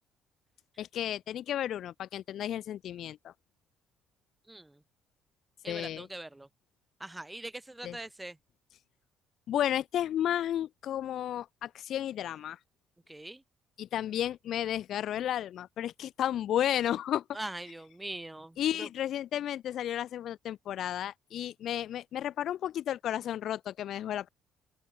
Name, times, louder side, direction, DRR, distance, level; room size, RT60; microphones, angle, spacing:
voice 1, 0.8-3.3 5.7-6.1 7.8-8.0 9.5-12.6 13.8-17.2 18.6-24.3, left 11 dB, 55° left, 1.0 m, -33 dB
voice 2, 5.6-6.5 7.0-8.4 13.1-13.4 17.3-18.9, right 1 dB, 10° right, 0.4 m, -42 dB
open air
cardioid pair, 140°, 0 cm